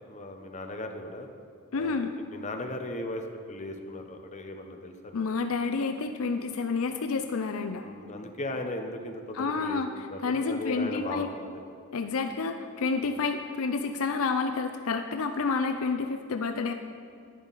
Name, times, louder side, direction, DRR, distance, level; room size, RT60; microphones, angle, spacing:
voice 1, 0.1-1.3 1.7-3.2 3.5-5.2 7.8-9.8 10.1-11.6 13.1-13.2, left 1 dB, 35° left, 4 dB, 0.9 m, -37 dB
voice 2, 1.7-2.1 5.1-7.8 9.3-11.3 11.9-16.7, left 4 dB, 75° left, 7 dB, 0.5 m, -29 dB
11.0 x 10.5 x 4.1 m, 2.1 s
head